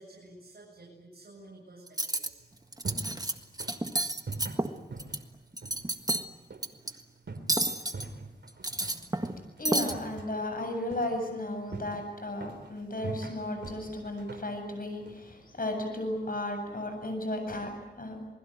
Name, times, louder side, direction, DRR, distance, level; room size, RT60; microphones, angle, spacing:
voice 1, 0.0-2.5, right 2 dB, 60° right, -4 dB, 7.5 m, -52 dB
Cutlery silverware, 1.9-2.3 2.7-3.3 3.6-5.2 5.5-6.3 6.6-6.9 7.5-8.1 8.5-9.4 9.7-9.9, right 1 dB, 20° right, 1.6 m, -30 dB
sound 1, 2.4-15.9, right 3 dB, 85° right, 3.6 m, -45 dB
voice 2, 9.6-18.2, left 1 dB, 55° left, 5 dB, 8.0 m, -34 dB
28.0 x 21.0 x 9.2 m, 1.0 s
wide cardioid pair, 75°, 18 cm